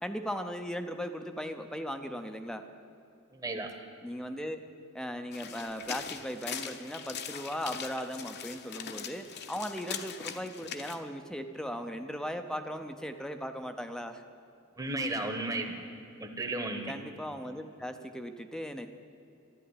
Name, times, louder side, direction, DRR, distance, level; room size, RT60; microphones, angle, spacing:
voice 1, 0.0-2.6 4.0-4.6 4.9-14.2 16.8-18.9, equal, 5° left, 7 dB, 0.6 m, -38 dB
voice 2, 3.3-3.7 14.8-15.8 16.2-16.9, right 2 dB, 15° right, 3 dB, 1.1 m, -34 dB
sound 1, 5.3-11.0, left 7 dB, 50° left, 0.9 m, -41 dB
12.5 x 11.0 x 9.8 m, 2.7 s
head